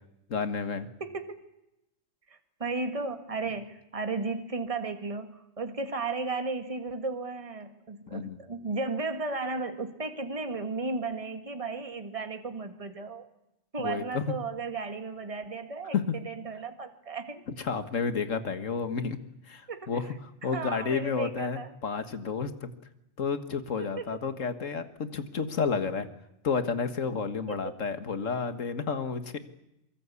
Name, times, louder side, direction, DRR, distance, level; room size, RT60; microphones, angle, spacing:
voice 1, 0.3-0.9 8.1-8.4 13.8-14.3 15.9-16.2 17.6-19.2 19.5-20.1 20.4-22.7 23.2-26.1 26.4-29.4, left 5 dB, 85° left, 10 dB, 2.0 m, -31 dB
voice 2, 1.0-1.4 2.3-13.2 13.7-17.4 19.7-20.0 20.5-21.7 24.0-24.1 27.5-27.7, right 3 dB, 25° right, 7 dB, 1.9 m, -34 dB
24.0 x 23.0 x 8.4 m, 0.87 s
omnidirectional pair, 1.3 m